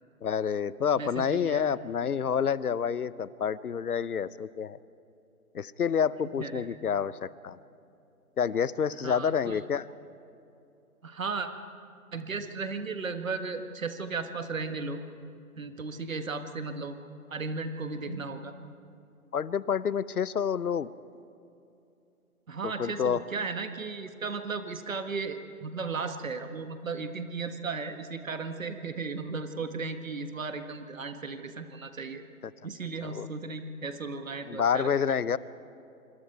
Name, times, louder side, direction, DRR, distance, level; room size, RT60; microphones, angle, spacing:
voice 1, 0.2-4.8 5.5-7.6 8.4-9.8 19.3-20.9 22.8-23.2 33.0-33.3 34.5-35.4, left 7 dB, 85° left, 18 dB, 0.8 m, -28 dB
voice 2, 0.9-1.6 6.4-6.7 9.0-9.6 11.0-11.5 12.1-15.0 15.5-17.0 17.3-18.5 22.5-32.2 32.6-35.0, right 4 dB, 65° right, 7 dB, 1.6 m, -35 dB
26.0 x 26.0 x 4.6 m, 2.6 s
hypercardioid pair, 175°, 44 cm